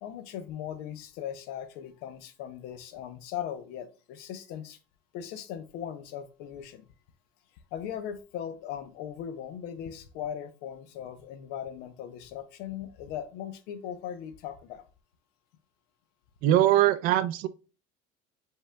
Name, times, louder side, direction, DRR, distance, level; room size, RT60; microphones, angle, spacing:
voice 1, 0.0-4.8 5.1-6.8 7.7-14.8, left 9 dB, 75° left, 0.6 m, -39 dB
voice 2, 16.4-17.5, right 13 dB, 60° right, 0.4 m, -22 dB
5.4 x 3.7 x 2.2 m
cardioid pair, 160°, 17 cm